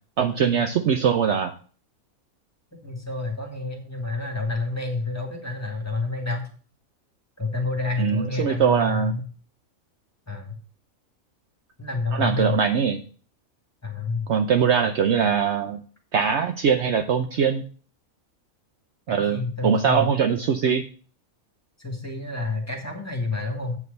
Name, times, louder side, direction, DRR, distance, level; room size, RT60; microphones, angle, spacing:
voice 1, 0.2-1.5 8.0-9.1 12.1-13.0 14.3-15.8 16.1-17.6 19.1-20.8, right 7 dB, 60° right, 6 dB, 0.8 m, -22 dB
voice 2, 2.8-6.5 7.4-9.2 10.3-10.5 11.8-12.6 13.8-14.3 19.1-20.0 21.8-23.8, left 3 dB, 10° left, 2 dB, 1.8 m, -29 dB
8.3 x 4.8 x 6.5 m, 0.41 s
omnidirectional pair, 1.5 m